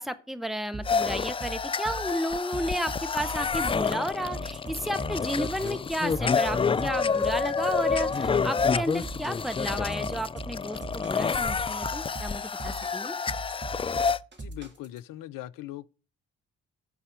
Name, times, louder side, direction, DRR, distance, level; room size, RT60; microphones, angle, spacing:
voice 1, 0.0-13.2, equal, ahead, 1.2 m, -32 dB
sound 1, 0.7-15.0, right 1 dB, 30° right, 2.4 m, -40 dB
sound 2, 0.8-14.2, left 5 dB, 15° left, 0.3 m, -28 dB
voice 2, 14.4-15.9, left 14 dB, 60° left, 0.7 m, -40 dB
16.0 x 5.5 x 3.4 m
hypercardioid pair, 40°, 36 cm